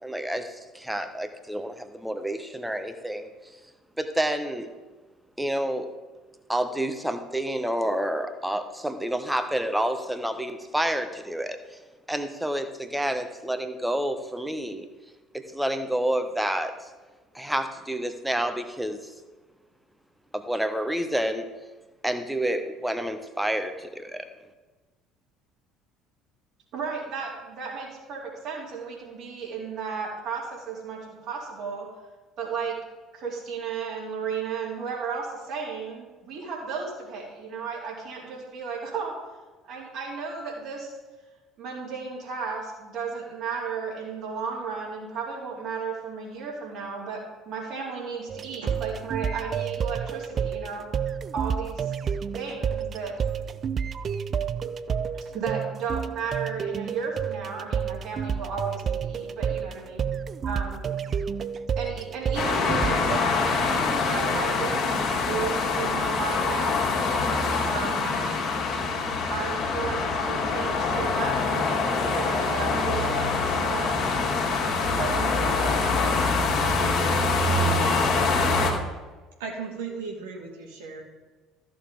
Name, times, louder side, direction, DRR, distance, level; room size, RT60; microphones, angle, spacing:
voice 1, 0.0-3.3 4.0-4.7 5.4-5.9 6.5-11.8 12.1-14.9 15.3-16.7 17.3-19.1 20.3-21.5 22.0-24.3, right 1 dB, 5° right, 8 dB, 1.1 m, -29 dB
voice 2, 26.7-31.9 32.4-32.8 33.1-39.1 39.6-40.9 41.6-47.2 47.5-51.9 52.4-53.1 55.3-60.1 60.5-60.8 61.8-66.9 67.6-68.2 69.3-74.0 75.0-76.1, right 5 dB, 55° right, -4 dB, 3.8 m, -34 dB
sound 1, 48.3-63.2, right 7 dB, 40° right, 0.4 m, -30 dB
sound 2, 62.3-78.7, left 3 dB, 45° left, 2.2 m, -25 dB
voice 3, 79.4-81.0, right 5 dB, 70° right, -1 dB, 2.1 m, -36 dB
14.0 x 6.9 x 3.9 m, 1.3 s
figure-of-eight pair, 60°, 0 cm